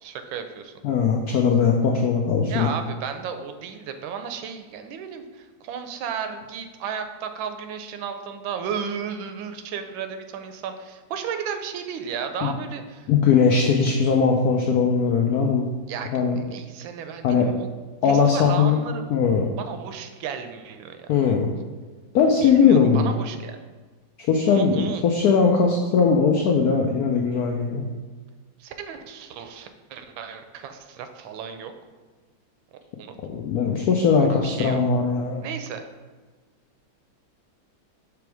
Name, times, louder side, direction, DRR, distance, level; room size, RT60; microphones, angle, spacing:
voice 1, 0.0-0.7 2.5-13.1 15.9-17.7 18.0-19.2 19.6-21.4 22.4-23.6 24.5-25.0 28.6-31.7 33.0-33.2 34.2-34.8 35.4-35.8, right 7 dB, 80° right, 7 dB, 1.3 m, -34 dB
voice 2, 0.8-2.7 12.4-12.5 13.1-15.7 16.1-16.4 17.2-17.5 18.0-18.8 19.1-19.5 21.1-21.5 22.1-23.1 24.3-27.9 33.3-35.4, left 5 dB, 85° left, 2 dB, 0.8 m, -20 dB
6.1 x 3.3 x 4.7 m, 1.3 s
omnidirectional pair, 2.2 m